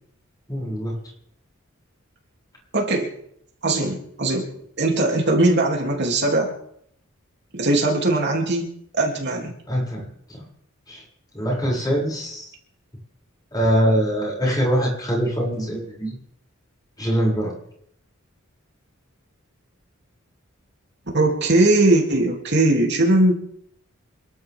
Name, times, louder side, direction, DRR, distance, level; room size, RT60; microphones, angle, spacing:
voice 1, 0.5-0.9 9.7-10.4 10.9-11.0 11.3-12.5 13.5-16.1 17.0-17.5, equal, 20° left, -4 dB, 7.6 m, -23 dB
voice 2, 2.7-3.1 3.6-4.5 4.8-6.5 7.5-8.7 8.9-9.5 21.1-23.4, right 2 dB, 55° right, 0 dB, 3.4 m, -20 dB
28.0 x 12.0 x 3.8 m, 0.69 s
head